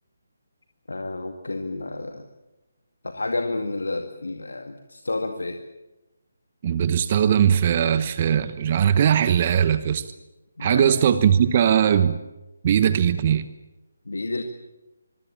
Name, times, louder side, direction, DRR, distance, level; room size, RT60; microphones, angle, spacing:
voice 1, 0.9-2.3 3.0-5.6 10.6-10.9 14.1-14.4, left 2 dB, 70° left, 6 dB, 2.1 m, -30 dB
voice 2, 6.6-10.0 10.6-12.2 12.6-13.5, right 9 dB, 35° right, 13 dB, 1.1 m, -20 dB
25.5 x 23.5 x 7.4 m, 1.0 s
figure-of-eight pair, 150°, 0 cm